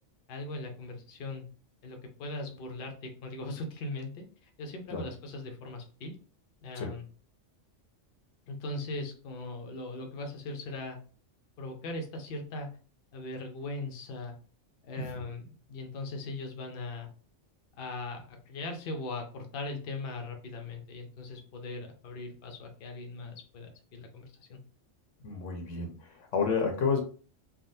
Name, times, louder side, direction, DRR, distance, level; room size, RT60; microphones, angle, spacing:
voice 1, 0.3-1.4 1.8-6.1 6.6-7.1 8.5-11.0 11.6-12.7 13.1-14.3 14.8-17.1 17.8-24.6, left 2 dB, 60° left, 3 dB, 0.8 m, -39 dB
voice 2, 25.2-27.0, left 5 dB, 85° left, 3 dB, 1.1 m, -30 dB
3.4 x 2.3 x 2.6 m, 0.40 s
omnidirectional pair, 1.3 m